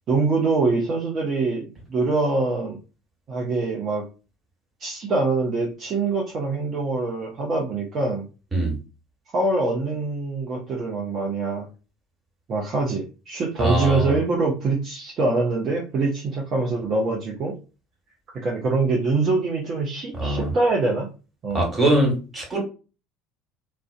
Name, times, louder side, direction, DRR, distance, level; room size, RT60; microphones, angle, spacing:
voice 1, 0.1-2.8 3.3-4.1 4.8-8.3 9.3-11.7 12.5-17.5 18.3-21.1 21.4-21.7, right 3 dB, 45° right, -2 dB, 0.6 m, -24 dB
voice 2, 13.6-14.2 20.1-20.5 21.5-22.6, right 1 dB, 20° right, -1 dB, 1.4 m, -22 dB
2.4 x 2.1 x 2.4 m, 0.33 s
figure-of-eight pair, 65°, 0 cm